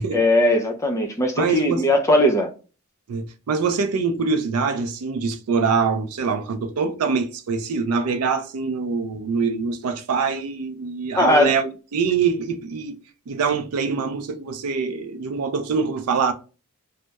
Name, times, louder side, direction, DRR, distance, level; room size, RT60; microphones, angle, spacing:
voice 1, 0.1-2.5 11.2-11.5, left 1 dB, 15° left, 0.3 m, -19 dB
voice 2, 1.4-1.8 3.1-13.0 13.3-16.3, right 5 dB, 75° right, 0.4 m, -24 dB
2.2 x 2.0 x 2.7 m
head